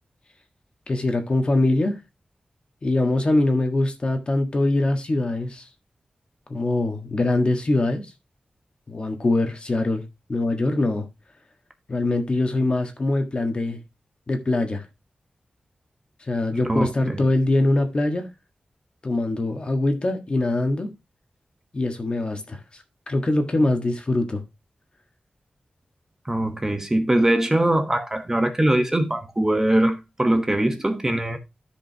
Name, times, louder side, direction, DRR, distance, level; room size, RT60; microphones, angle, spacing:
voice 1, 0.9-2.0 2.8-5.7 6.5-8.1 8.9-10.0 10.3-11.1 11.9-13.8 14.3-14.8 16.2-18.3 19.0-20.9 21.7-24.4, left 2 dB, 40° left, 1.5 m, -23 dB
voice 2, 16.6-17.2 26.3-31.4, right 1 dB, 20° right, 1.1 m, -22 dB
14.0 x 5.1 x 2.9 m
wide cardioid pair, 120°, 3 cm